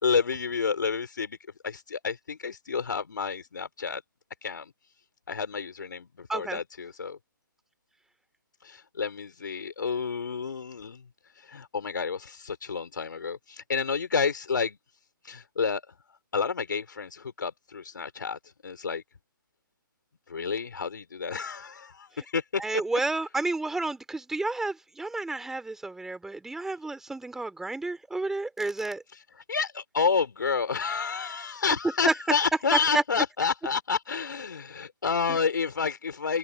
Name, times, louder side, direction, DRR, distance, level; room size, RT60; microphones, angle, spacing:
voice 1, 0.0-1.4 1.6-4.0 4.4-4.7 5.3-7.2 8.6-11.0 11.4-14.8 15.2-15.8 16.3-19.0 20.3-22.6 29.1-29.2 29.5-36.4, left 5 dB, 70° left, 4.5 m, -30 dB
voice 2, 6.3-6.6 22.6-29.0 32.1-32.2 32.7-33.0 35.3-35.4, right 2 dB, 5° right, 2.8 m, -30 dB
figure-of-eight pair, 135°, 11 cm